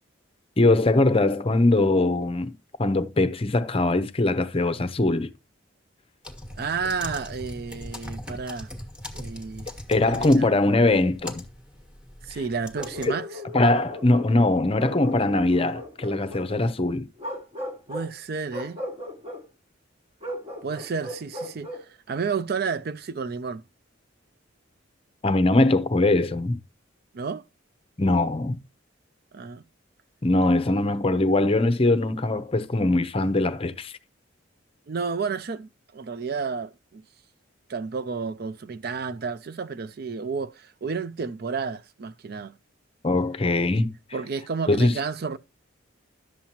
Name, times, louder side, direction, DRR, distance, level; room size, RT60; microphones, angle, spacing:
voice 1, 0.6-2.5 2.8-5.3 9.9-11.4 13.0-13.2 13.5-17.1 25.2-26.6 28.0-28.6 30.2-34.0 43.0-43.9 44.7-44.9, left 2 dB, 30° left, 0.6 m, -21 dB
sound 1, 6.2-13.1, left 1 dB, 5° right, 1.4 m, -40 dB
voice 2, 6.6-8.7 9.1-9.7 10.0-10.5 12.2-13.4 17.9-18.8 20.6-21.7 22.1-23.6 27.1-27.4 29.3-29.6 34.9-37.1 37.7-42.5 44.1-45.4, right 5 dB, 50° right, 0.4 m, -31 dB
Bark, 12.7-14.4 14.8-16.5 17.2-18.1 18.5-19.4 20.2-21.9, left 1 dB, 30° right, 1.3 m, -37 dB
11.5 x 7.5 x 2.9 m
head